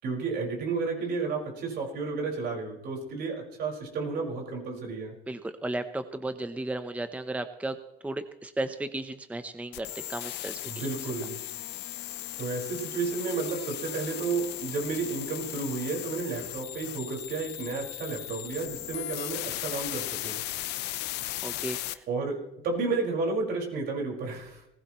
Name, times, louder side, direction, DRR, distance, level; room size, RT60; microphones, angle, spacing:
voice 1, 0.0-5.1 10.6-11.4 12.4-20.4 22.1-22.4 22.6-24.6, right 4 dB, 70° right, 0 dB, 5.2 m, -32 dB
voice 2, 5.3-7.8 8.0-10.7 21.4-22.0, right 2 dB, 10° right, 10 dB, 0.8 m, -34 dB
sound 1, 9.7-21.9, left 15 dB, 85° left, 0.8 m, -37 dB
19.0 x 16.0 x 3.1 m, 0.88 s
cardioid pair, 110°, 17 cm